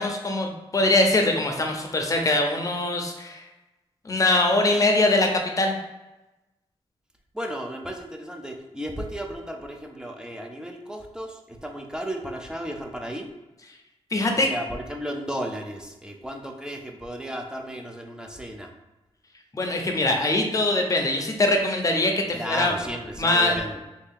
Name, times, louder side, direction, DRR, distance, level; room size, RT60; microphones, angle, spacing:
voice 1, 0.0-3.4 4.0-5.7 14.1-14.5 19.5-22.7 23.2-23.5, left 2 dB, 30° left, 2 dB, 0.6 m, -22 dB
voice 2, 7.3-13.3 14.5-18.7 22.3-23.8, equal, 5° right, 2 dB, 0.5 m, -34 dB
3.2 x 2.7 x 3.7 m, 1.0 s
wide cardioid pair, 100°, 10 cm